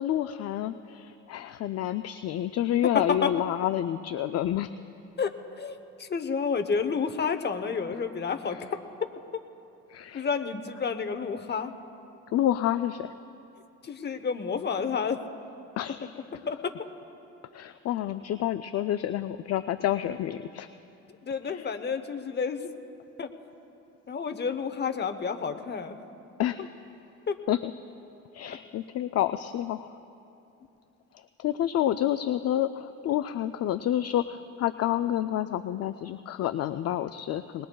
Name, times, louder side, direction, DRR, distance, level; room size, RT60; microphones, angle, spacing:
voice 1, 0.0-4.7 9.9-10.3 12.3-13.1 15.8-16.1 17.5-20.7 21.5-21.7 26.4-26.6 27.5-27.7 28.3-30.0 31.1-37.7, left 12 dB, 55° left, 11 dB, 0.4 m, -29 dB
voice 2, 2.9-3.3 5.2-8.6 10.1-11.7 13.8-15.2 16.5-16.7 21.2-22.7 23.2-23.3 24.1-26.0 27.3-27.4 28.5-28.6, left 5 dB, 35° left, 8 dB, 0.9 m, -30 dB
21.0 x 20.5 x 2.3 m, 2.8 s
cardioid pair, 90°, 30 cm